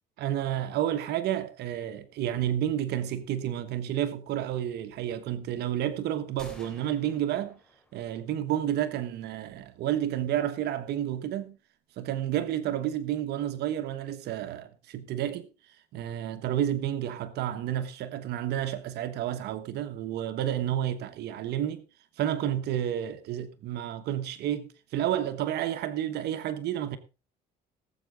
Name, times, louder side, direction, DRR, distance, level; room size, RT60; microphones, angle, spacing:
voice 1, 0.2-7.6 7.9-11.6 12.0-15.5 15.9-21.8 22.2-27.0, right 11 dB, 75° right, 1.3 m, -30 dB
sound 1, 6.4-8.3, left 1 dB, 5° left, 3.6 m, -52 dB
18.0 x 8.2 x 3.8 m
cardioid pair, 110°, 17 cm